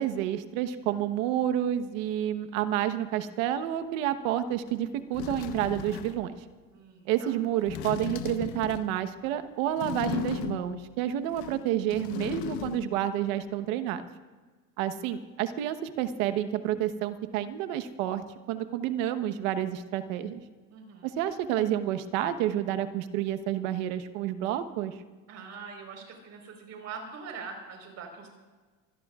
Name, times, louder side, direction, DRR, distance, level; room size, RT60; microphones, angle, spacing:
voice 1, 0.0-6.4 7.1-14.1 14.8-20.4 21.0-25.0, right 11 dB, 75° right, 10 dB, 1.3 m, -29 dB
sound 1, 4.7-4.8 5.1-6.3 7.6-9.0 9.8-10.9 11.3-13.0 13.2-13.3, left 11 dB, 65° left, 1.1 m, -36 dB
voice 2, 6.7-7.4 20.7-21.2 25.3-28.3, right 5 dB, 40° right, 2 dB, 4.6 m, -43 dB
25.5 x 17.5 x 2.5 m, 1.4 s
cardioid pair, 145°, 40 cm